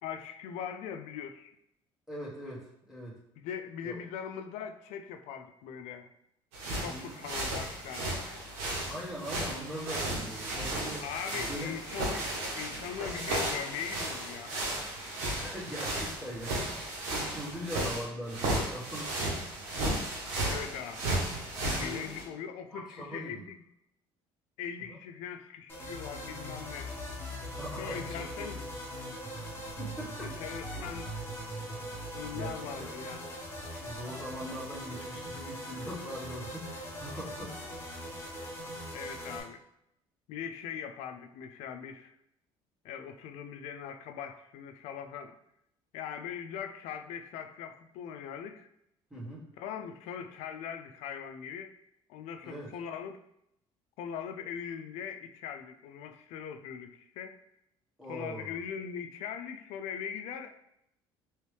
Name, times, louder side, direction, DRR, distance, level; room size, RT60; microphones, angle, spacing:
voice 1, 0.0-1.6 3.4-6.1 6.8-8.1 11.0-14.6 20.5-21.1 21.6-23.6 24.6-26.9 27.8-28.7 30.2-31.1 32.1-33.2 38.9-39.6 40.3-42.1 42.8-45.3 45.9-48.7 49.6-51.7 52.1-53.2 54.0-57.4 58.1-60.5, left 8 dB, 80° left, 8 dB, 0.4 m, -40 dB
voice 2, 2.1-3.2 3.8-4.0 6.7-7.2 8.9-11.0 11.3-11.7 15.2-19.3 21.6-22.2 22.7-23.4 24.9-25.0 27.6-28.6 29.8-30.9 32.2-32.9 33.8-37.7 49.1-49.5 52.4-52.7 58.0-58.5, equal, 5° right, -7 dB, 1.3 m, -41 dB
sound 1, 6.5-22.2, right 1 dB, 90° right, 1.1 m, -34 dB
sound 2, 25.7-39.4, equal, 20° left, 1.3 m, -41 dB
3.0 x 3.0 x 3.2 m, 0.79 s
supercardioid pair, 95°, 11 cm